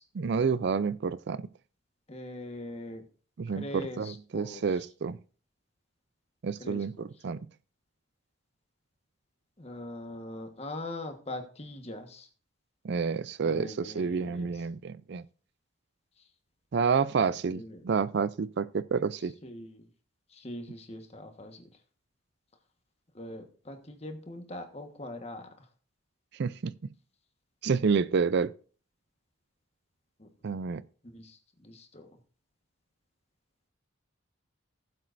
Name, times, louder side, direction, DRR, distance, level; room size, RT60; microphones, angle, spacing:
voice 1, 0.2-1.5 3.4-5.2 6.4-7.4 12.8-15.2 16.7-19.3 26.3-26.9 27.6-28.5 30.4-30.8, right 5 dB, 55° right, 0.4 m, -29 dB
voice 2, 2.1-3.0 3.5-4.6 6.6-6.9 9.6-12.3 13.4-14.6 17.5-17.8 19.4-19.8 20.3-21.7 23.1-25.5 30.2-30.3 31.0-32.1, left 1 dB, 30° left, 1.4 m, -42 dB
18.0 x 7.6 x 2.6 m
head